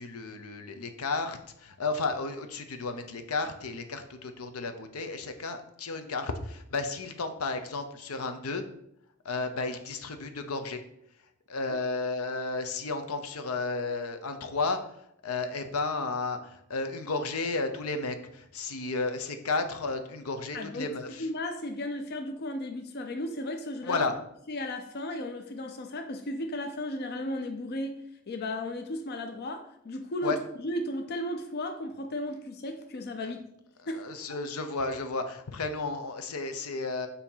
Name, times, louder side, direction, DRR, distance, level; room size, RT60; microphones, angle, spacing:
voice 1, 0.0-8.6 9.2-10.8 11.5-14.8 15.2-21.3 23.8-24.1 30.2-30.4 33.9-37.1, left 3 dB, 80° left, 7 dB, 0.7 m, -33 dB
voice 2, 20.5-24.1 24.5-33.4 33.9-34.1, left 1 dB, 45° left, 5 dB, 0.5 m, -35 dB
6.8 x 2.8 x 5.5 m, 0.74 s
head